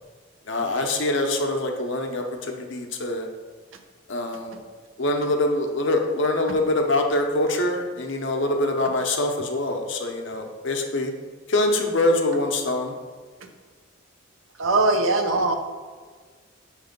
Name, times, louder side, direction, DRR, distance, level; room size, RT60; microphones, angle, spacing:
voice 1, 0.5-3.3 4.1-4.6 5.0-11.1 11.5-12.9, left 2 dB, 65° left, 3 dB, 0.8 m, -24 dB
voice 2, 14.6-15.5, right 2 dB, 80° right, 6 dB, 0.7 m, -20 dB
6.7 x 3.2 x 5.2 m, 1.5 s
head